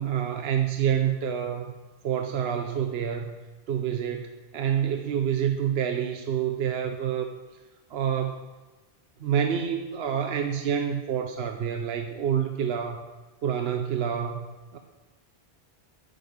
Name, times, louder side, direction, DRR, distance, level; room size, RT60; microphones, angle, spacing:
voice 1, 0.0-1.7 2.0-3.4 3.7-7.3 7.9-8.4 9.2-13.0 13.4-14.5 14.7-14.8, right 8 dB, 75° right, 5 dB, 0.9 m, -27 dB
9.0 x 5.3 x 8.0 m, 1.2 s
omnidirectional pair, 1.1 m